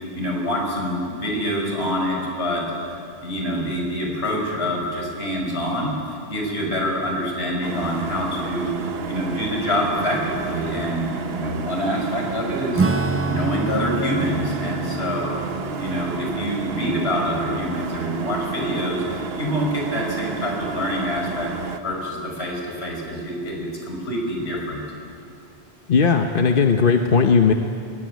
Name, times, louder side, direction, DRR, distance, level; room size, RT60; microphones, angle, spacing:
voice 1, 0.2-2.6 2.9-8.7 9.1-12.8 13.2-15.4 15.8-21.5 21.8-24.8, equal, 70° left, -1 dB, 5.8 m, -26 dB
sound 1, 7.6-21.8, right 5 dB, 65° right, 1.2 m, -31 dB
Acoustic guitar / Strum, 12.8-18.7, right 3 dB, 15° right, 0.5 m, -28 dB
voice 2, 25.9-27.5, left 5 dB, 55° left, 4 dB, 1.1 m, -17 dB
22.0 x 20.0 x 9.4 m, 2.5 s
omnidirectional pair, 1.1 m